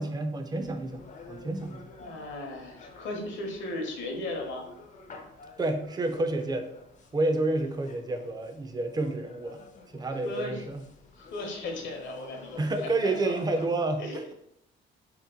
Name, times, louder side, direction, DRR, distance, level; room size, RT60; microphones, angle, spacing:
voice 1, 0.0-1.8 5.6-6.7 7.1-9.6 9.9-10.8 12.6-14.3, right 2 dB, 20° right, 6 dB, 0.4 m, -29 dB
sound 1, 0.6-13.7, left 3 dB, 40° left, 0.4 m, -51 dB
voice 2, 1.9-4.7 10.2-10.6 11.1-13.3 14.0-14.3, left 2 dB, 70° left, 2 dB, 0.8 m, -36 dB
2.9 x 2.1 x 3.6 m, 0.77 s
cardioid pair, 90°, 20 cm